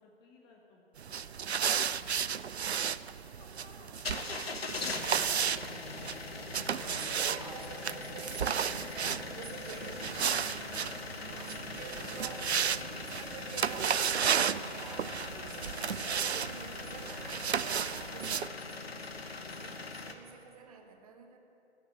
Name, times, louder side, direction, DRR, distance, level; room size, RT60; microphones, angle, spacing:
voice 1, 0.0-3.0 3.4-4.0 10.6-11.7 12.0-12.1 12.6-13.2, left 3 dB, 15° left, 0 dB, 0.9 m, -58 dB
sound 1, 1.0-18.5, right 7 dB, 75° right, 0.5 m, -34 dB
sound 2, 3.9-20.1, left 3 dB, 65° left, 1.2 m, -42 dB
voice 2, 5.2-5.8 6.7-10.4 11.2-21.4, right 4 dB, 35° right, 5 dB, 1.2 m, -48 dB
sound 3, 8.4-19.8, equal, 30° left, 4.1 m, -62 dB
13.5 x 7.3 x 9.4 m, 2.8 s
figure-of-eight pair, 130°, 32 cm